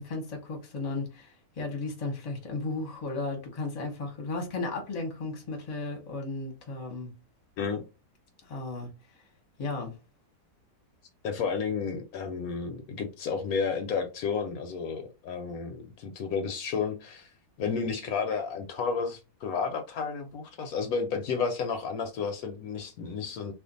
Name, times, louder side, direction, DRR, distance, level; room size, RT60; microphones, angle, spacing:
voice 1, 0.0-7.1 8.5-8.9 9.6-9.9, left 3 dB, 30° left, 0.8 m, -35 dB
voice 2, 11.2-17.3 17.6-23.5, left 5 dB, 75° left, 1.0 m, -32 dB
2.5 x 2.4 x 3.8 m
omnidirectional pair, 1.6 m